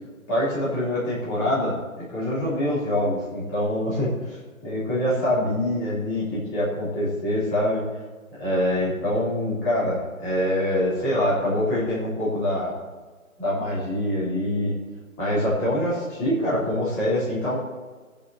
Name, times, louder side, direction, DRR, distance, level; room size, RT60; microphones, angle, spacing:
voice 1, 0.3-7.8 8.4-12.7 13.4-14.7 15.2-17.6, left 1 dB, 15° left, -9 dB, 3.2 m, -25 dB
18.5 x 8.4 x 2.8 m, 1.4 s
figure-of-eight pair, 155°, 42 cm